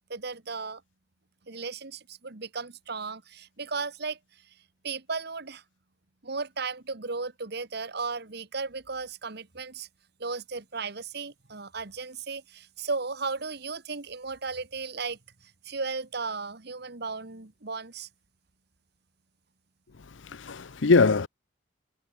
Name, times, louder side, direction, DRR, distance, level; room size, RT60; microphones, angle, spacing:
voice 1, 0.1-0.8 1.5-4.5 4.8-5.6 6.2-9.9 10.2-18.1, right 4 dB, 60° right, 1.6 m, -35 dB
voice 2, 20.1-21.3, left 4 dB, 85° left, 0.8 m, -22 dB
head